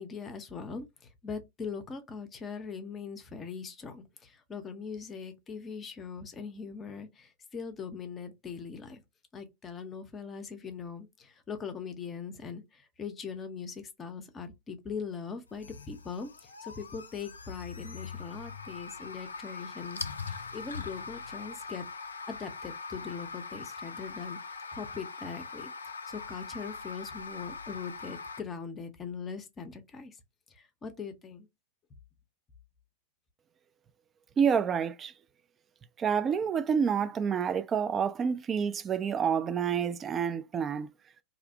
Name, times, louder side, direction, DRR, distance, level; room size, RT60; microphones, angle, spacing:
voice 1, 0.0-9.0 9.3-16.3 16.6-25.7 26.1-30.2 30.5-31.5, left 5 dB, 25° left, 0.6 m, -41 dB
sound 1, 15.5-28.4, left 4 dB, 75° left, 0.3 m, -42 dB
voice 2, 34.4-35.1 36.0-40.9, right 7 dB, 25° right, 0.3 m, -28 dB
2.6 x 2.0 x 2.6 m
figure-of-eight pair, 90°, 0 cm